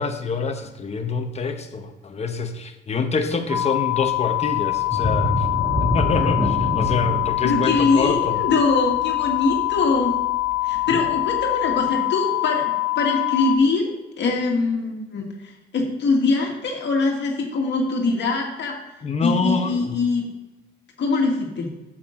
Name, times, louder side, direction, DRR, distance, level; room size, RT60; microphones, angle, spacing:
voice 1, 0.0-5.5 5.8-8.4 10.9-11.0 19.0-20.0, left 4 dB, 35° left, 6 dB, 1.0 m, -26 dB
sound 1, 3.5-13.6, left 17 dB, 15° right, 1.5 m, -24 dB
sound 2, 4.9-10.3 10.8-10.9 11.4-11.5, left 1 dB, 5° left, 2.2 m, -26 dB
voice 2, 7.4-10.1 10.6-13.9 14.2-18.8 19.2-20.2 21.0-21.7, left 3 dB, 60° left, 0 dB, 1.7 m, -23 dB
8.4 x 7.8 x 3.8 m, 1.1 s
cardioid pair, 90°, 20 cm